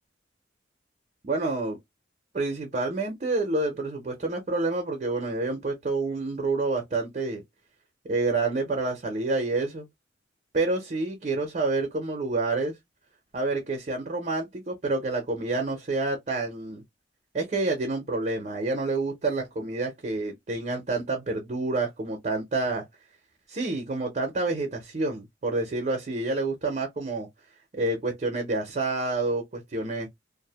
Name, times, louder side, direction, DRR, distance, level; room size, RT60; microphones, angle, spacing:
voice 1, 1.2-1.8 2.3-7.4 8.0-9.8 10.5-12.7 13.3-16.8 17.3-22.8 23.5-27.3 27.7-30.1, right 3 dB, 40° right, 0.6 m, -28 dB
2.5 x 2.0 x 2.7 m
head